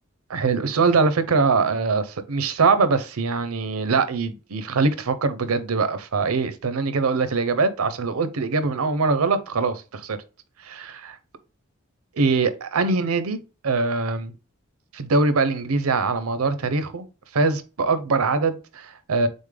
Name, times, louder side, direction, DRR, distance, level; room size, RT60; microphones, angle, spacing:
voice 1, 0.3-10.2 10.6-11.2 12.2-14.3 14.9-17.1 17.3-19.3, right 4 dB, 90° right, 0.6 m, -23 dB
3.9 x 3.6 x 3.3 m
head